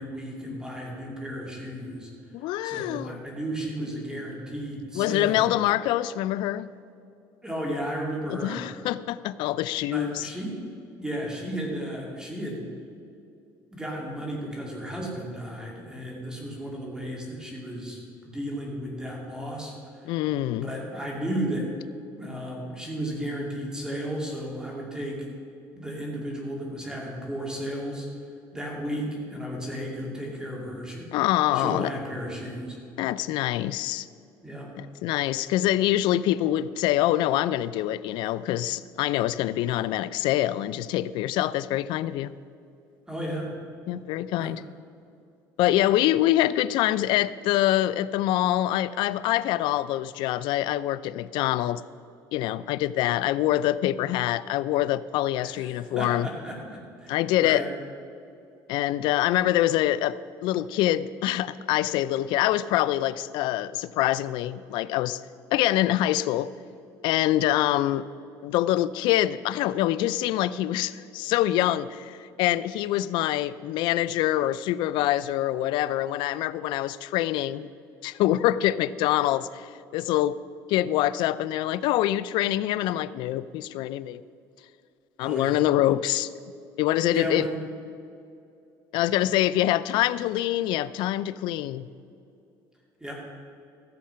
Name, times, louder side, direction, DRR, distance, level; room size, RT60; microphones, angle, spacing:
voice 1, 0.0-2.1 2.6-5.5 7.4-8.6 9.9-12.6 13.7-20.2 20.5-21.7 22.2-25.3 25.7-28.1 28.5-31.1 31.5-32.8 34.4-34.7 43.1-43.5 44.4-44.5 55.4-57.7 85.2-85.6 87.1-87.6 93.0-93.1, right 1 dB, 10° right, -2 dB, 2.5 m, -34 dB
voice 2, 2.3-3.1 5.0-6.7 8.3-10.3 20.0-20.7 31.1-31.9 33.0-34.1 34.8-42.3 43.9-44.6 45.6-51.8 52.3-56.3 57.1-57.6 58.7-65.2 65.5-66.5 67.0-68.0 68.4-77.7 78.0-80.4 80.7-84.2 85.2-86.3 86.8-87.5 88.9-91.9, left 14 dB, 75° left, 16 dB, 0.4 m, -25 dB
14.5 x 7.5 x 5.7 m, 2.5 s
cardioid pair, 135°, 8 cm